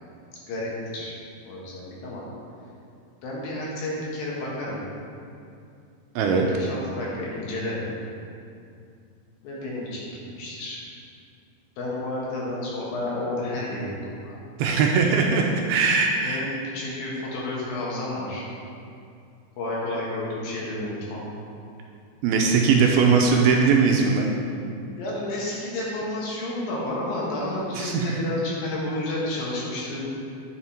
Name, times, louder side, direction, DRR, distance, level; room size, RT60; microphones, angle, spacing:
voice 1, 0.5-1.2 1.5-2.2 3.2-4.8 6.3-7.9 9.4-10.8 11.8-14.4 16.2-18.5 19.6-21.2 25.0-30.1, left 1 dB, 70° left, -5 dB, 3.0 m, -31 dB
voice 2, 6.2-6.5 14.6-16.4 22.2-24.3 27.8-28.2, right 5 dB, 80° right, 1 dB, 2.4 m, -20 dB
9.5 x 5.6 x 4.4 m, 2.5 s
omnidirectional pair, 4.7 m